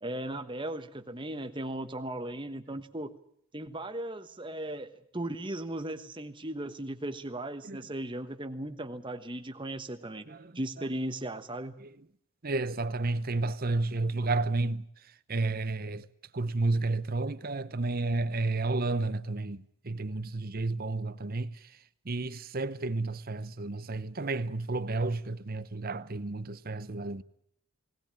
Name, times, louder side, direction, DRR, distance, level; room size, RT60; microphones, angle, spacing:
voice 1, 0.0-3.2 3.5-10.3 10.5-11.8, right 1 dB, 20° right, 1.2 m, -37 dB
voice 2, 12.4-14.9 15.3-16.1 16.3-21.7 22.0-27.2, right 2 dB, 40° right, 0.8 m, -31 dB
20.0 x 18.5 x 8.9 m
head